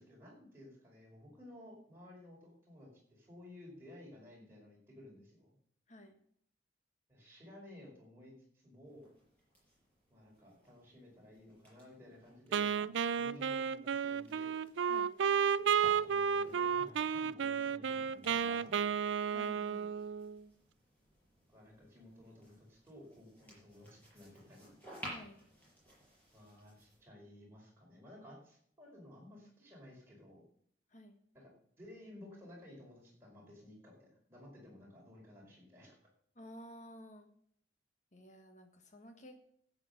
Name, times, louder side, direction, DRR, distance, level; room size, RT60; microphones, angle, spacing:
voice 1, 0.0-5.5 7.1-8.3 8.6-9.1 10.1-14.6 15.6-19.1 21.5-24.8 26.3-30.4 31.3-31.5 31.8-36.0, left 1 dB, 15° right, -3 dB, 5.0 m, -55 dB
voice 2, 5.9-6.2 14.9-15.1 19.3-20.0 23.5-23.6 25.1-25.4 30.9-31.2 36.3-37.3 38.1-39.4, equal, 40° left, 5 dB, 1.5 m, -53 dB
sound 1, 8.8-17.0 18.0-27.0, right 1 dB, 10° left, 6.4 m, -57 dB
Wind instrument woodwind instrument, 12.5-20.4, right 7 dB, 85° right, 0.4 m, -32 dB
11.5 x 8.8 x 6.7 m, 0.66 s
head